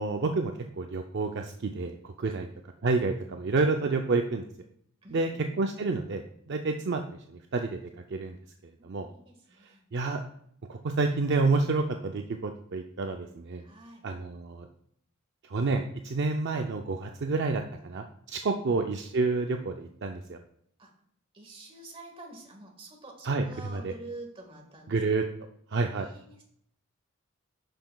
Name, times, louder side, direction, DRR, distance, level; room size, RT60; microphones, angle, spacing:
voice 1, 0.0-2.5 2.8-4.5 5.1-5.3 5.6-7.8 8.1-8.4 8.8-9.1 9.6-10.2 10.7-13.6 14.0-14.7 15.4-20.4 23.2-23.9 24.9-25.2 25.7-26.1, right 3 dB, 55° right, 4 dB, 0.4 m, -29 dB
voice 2, 5.0-5.6 8.8-9.8 13.6-14.1 20.8-20.9 21.3-25.0 25.9-26.4, right 2 dB, 25° right, 1 dB, 1.5 m, -47 dB
10.5 x 5.8 x 2.3 m, 0.69 s
head